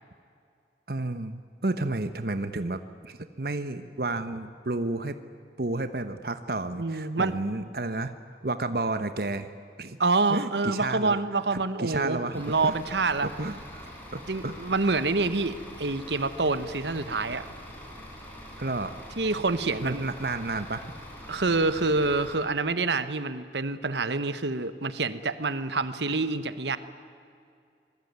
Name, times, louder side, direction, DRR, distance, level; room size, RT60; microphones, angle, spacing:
voice 1, 0.9-5.2 5.6-8.1 8.4-9.5 9.8-10.0 10.3-11.2 11.5-12.7 13.2-14.5 14.8-14.9 18.6-18.9 19.8-20.9, right 2 dB, 55° right, 10 dB, 1.1 m, -31 dB
voice 2, 6.8-7.3 10.0-13.3 14.3-17.5 19.2-20.1 21.3-26.8, right 3 dB, 80° right, 12 dB, 1.2 m, -27 dB
Bus / Idling, 12.3-22.3, equal, 10° left, 5.5 m, -44 dB
26.0 x 21.0 x 9.5 m, 2.4 s
head